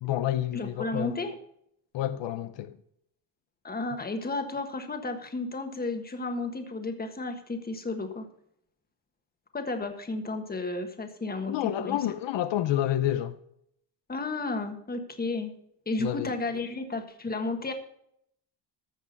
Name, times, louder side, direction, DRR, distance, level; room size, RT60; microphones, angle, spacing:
voice 1, 0.0-1.2 1.9-2.8 11.5-13.4 16.0-16.3, left 12 dB, 80° left, 0.8 m, -29 dB
voice 2, 0.5-1.4 3.6-8.3 9.5-12.0 14.1-15.5 15.9-17.7, left 3 dB, 20° left, 1.5 m, -33 dB
14.5 x 6.1 x 5.3 m
cardioid pair, 125°, 43 cm